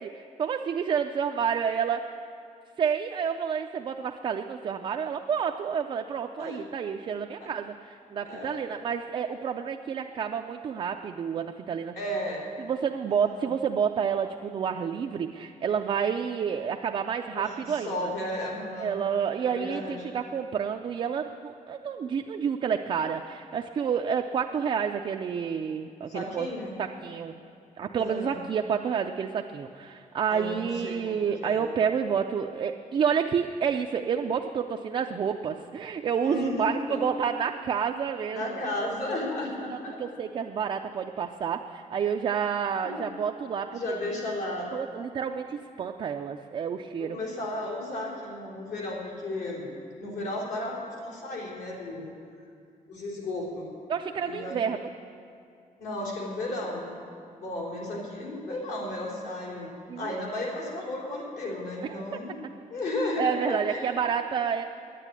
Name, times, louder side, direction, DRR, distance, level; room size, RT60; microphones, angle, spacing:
voice 1, 0.0-2.0 2.8-12.0 12.6-18.1 18.8-26.5 26.8-27.3 27.8-38.6 39.7-44.0 44.7-47.2 53.9-54.9 59.9-60.1 61.8-62.2 63.2-64.6, right 7 dB, 40° right, 4 dB, 0.4 m, -29 dB
voice 2, 8.2-8.6 11.9-12.5 13.1-13.5 17.3-19.0 19.4-20.1 26.1-26.8 28.0-28.4 30.3-31.6 36.2-37.0 38.3-40.0 42.8-43.1 43.7-44.7 47.0-49.7 50.0-52.1 52.9-53.7 54.2-54.6 55.8-56.9 57.4-59.7 60.0-62.4 62.7-63.9, left 1 dB, 75° left, -3 dB, 3.8 m, -34 dB
10.0 x 9.7 x 9.6 m, 2.5 s
wide cardioid pair, 175°, 14 cm